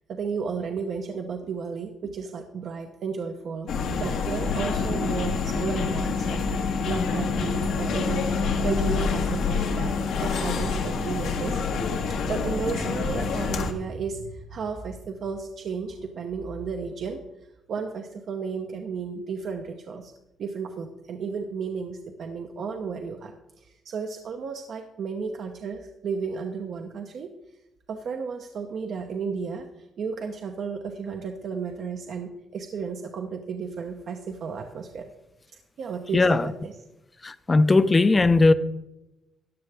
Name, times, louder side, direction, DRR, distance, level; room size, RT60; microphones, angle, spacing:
voice 1, 0.1-8.3 8.6-9.9 10.2-11.6 12.1-17.2 17.7-20.1 20.4-27.3 27.9-35.1 35.8-36.7, right 5 dB, 60° right, 0.9 m, -33 dB
sound 1, 3.7-13.7, left 5 dB, 80° left, 1.4 m, -27 dB
voice 2, 36.1-36.5 37.2-38.5, left 3 dB, 25° left, 0.6 m, -18 dB
14.0 x 9.6 x 3.5 m
cardioid pair, 90°, 0 cm